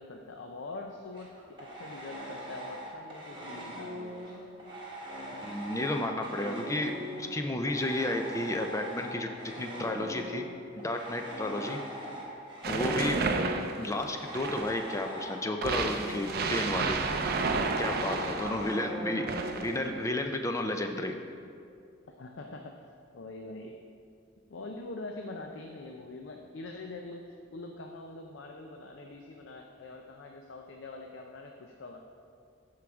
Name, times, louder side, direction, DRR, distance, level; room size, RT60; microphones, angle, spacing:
voice 1, 0.0-4.4 11.5-12.3 18.2-19.0 22.1-22.8 23.1-23.8 24.5-32.0, left 2 dB, 70° left, 3 dB, 0.5 m, -44 dB
sound 1, 1.1-7.4 7.7-20.1, equal, 25° right, 1.5 m, -41 dB
voice 2, 5.4-10.5 10.8-11.8 12.7-13.2 13.8-17.0 17.8-21.2, left 1 dB, 15° left, 5 dB, 0.4 m, -32 dB
sound 2, 12.6-14.9 15.6-18.8 19.3-19.9, right 4 dB, 50° right, 0.5 m, -31 dB
13.5 x 4.7 x 3.5 m, 2.4 s
head